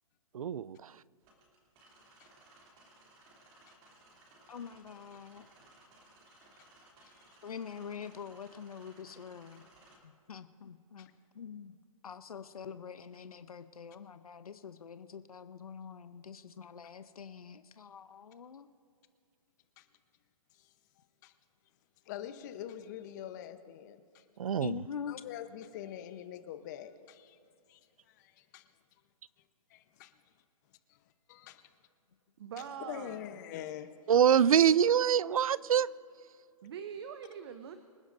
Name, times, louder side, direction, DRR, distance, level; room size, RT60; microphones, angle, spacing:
voice 1, 0.3-0.9 24.4-24.8 34.1-35.9, right 8 dB, 75° right, 0.4 m, -25 dB
sound 1, 1.2-10.0, right 2 dB, 25° right, 2.9 m, -61 dB
voice 2, 4.5-5.5 7.4-9.6 10.0-11.1 11.3-11.8 12.0-18.7 24.6-25.2, left 7 dB, 85° left, 0.7 m, -45 dB
voice 3, 6.3-6.7 7.0-7.4 11.0-11.1 19.8-19.9 20.5-20.7 21.2-21.3 22.1-24.2 25.1-27.4 27.7-27.8 28.1-28.7 29.7-30.1 30.9-31.0 31.3-31.6 32.6-33.9, left 11 dB, 30° left, 0.9 m, -45 dB
voice 4, 32.4-33.3 36.6-37.8, right 7 dB, 45° right, 0.8 m, -43 dB
26.0 x 10.5 x 2.6 m
hypercardioid pair, 150°, 18 cm